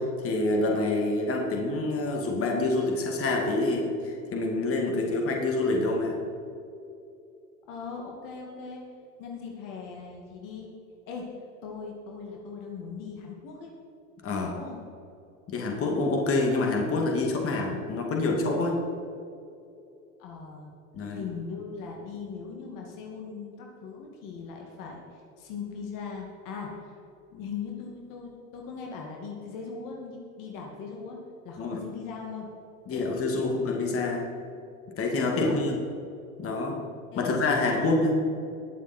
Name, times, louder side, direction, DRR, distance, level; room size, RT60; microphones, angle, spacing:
voice 1, 0.0-6.2 14.2-14.5 15.5-18.8 20.9-21.2 31.6-31.8 32.9-34.3 35.0-35.8 36.4-36.7 37.2-38.1, left 2 dB, 30° left, 0 dB, 2.5 m, -27 dB
voice 2, 7.7-8.8 9.2-10.7 11.1-11.4 11.6-13.7 14.2-14.8 20.2-20.7 21.1-26.9 27.3-32.5 32.9-33.5 35.3-35.7 37.1-38.0, left 5 dB, 50° left, 0 dB, 2.4 m, -39 dB
20.5 x 7.3 x 4.5 m, 2.6 s
hypercardioid pair, 100°, 42 cm